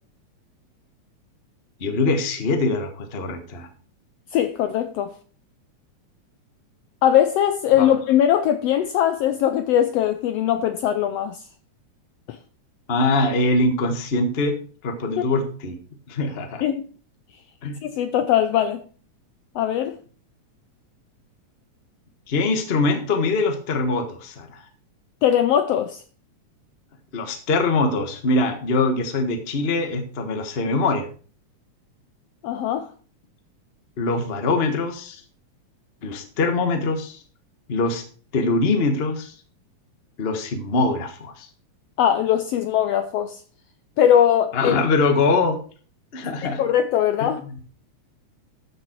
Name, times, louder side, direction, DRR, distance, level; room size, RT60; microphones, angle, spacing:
voice 1, 1.8-3.7 7.8-7.9 12.9-14.5 14.8-15.7 16.1-16.6 17.6-17.8 22.3-24.6 27.1-31.1 34.0-35.2 36.0-37.2 37.7-38.0 38.3-39.3 40.2-41.5 44.5-45.6 46.1-46.6 47.2-47.5, left 3 dB, 35° left, 0.9 m, -23 dB
voice 2, 4.3-5.1 7.0-11.4 12.3-12.4 15.2-15.3 16.6-16.9 17.8-18.8 19.5-20.0 25.2-26.0 32.4-32.9 42.0-43.4 44.0-44.8 46.4-47.4, left 10 dB, 75° left, 1.5 m, -20 dB
13.5 x 6.5 x 4.5 m
omnidirectional pair, 3.4 m